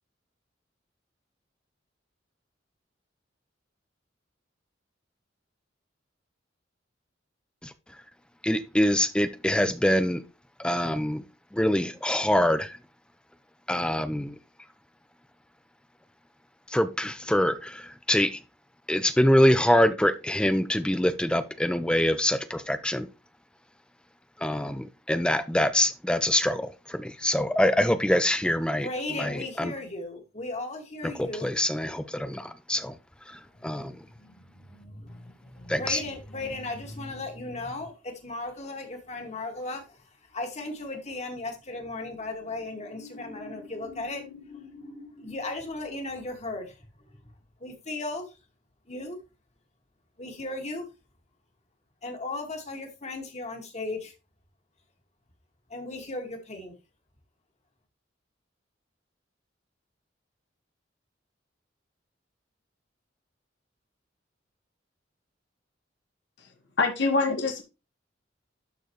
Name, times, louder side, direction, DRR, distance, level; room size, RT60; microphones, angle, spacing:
voice 1, 8.4-10.2 10.6-11.2 11.5-12.8 13.7-14.3 16.7-18.4 18.9-23.1 24.4-28.9 29.2-29.7 31.2-32.9 33.3-34.0 35.7-36.0, left 1 dB, 5° left, 0.6 m, -25 dB
voice 2, 28.8-31.5 33.5-40.0 40.3-46.8 47.6-48.3 48.9-49.2 50.2-50.9 52.0-54.1 55.7-56.7, left 2 dB, 40° left, 2.1 m, -36 dB
voice 3, 66.8-67.6, left 3 dB, 70° left, 1.6 m, -24 dB
12.0 x 4.5 x 3.2 m
head